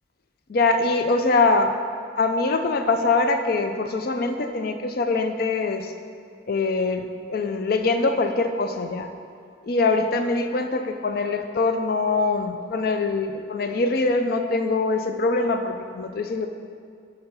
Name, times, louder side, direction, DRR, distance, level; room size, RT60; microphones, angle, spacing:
voice 1, 0.5-1.7 2.2-5.9 6.5-9.1 9.6-16.5, left 3 dB, 50° left, 7 dB, 0.4 m, -23 dB
6.7 x 3.8 x 5.5 m, 2.2 s
head